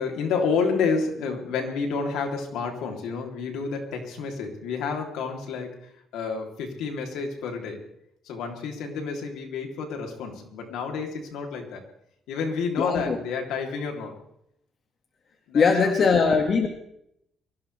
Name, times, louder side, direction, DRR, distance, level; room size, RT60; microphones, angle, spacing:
voice 1, 0.0-7.8 8.2-11.8 12.3-14.2 15.5-16.2, left 5 dB, 90° left, 2 dB, 3.3 m, -30 dB
voice 2, 12.8-13.2 15.5-16.7, left 5 dB, 55° left, 3 dB, 2.0 m, -20 dB
23.0 x 16.5 x 3.4 m, 0.74 s
cardioid pair, 90°, 0 cm